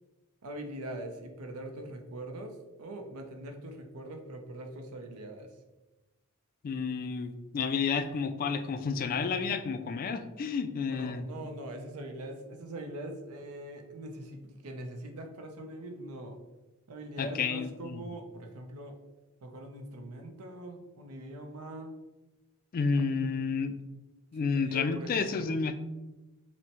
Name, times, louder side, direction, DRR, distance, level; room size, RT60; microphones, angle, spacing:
voice 1, 0.4-5.5 11.0-16.4 16.9-19.0 19.4-21.9 24.5-25.5, right 1 dB, 85° right, 5 dB, 0.6 m, -42 dB
voice 2, 6.6-11.3 17.2-18.0 22.7-23.8 24.3-25.8, left 5 dB, 40° left, 9 dB, 0.3 m, -31 dB
5.8 x 2.1 x 2.9 m, 1.1 s
head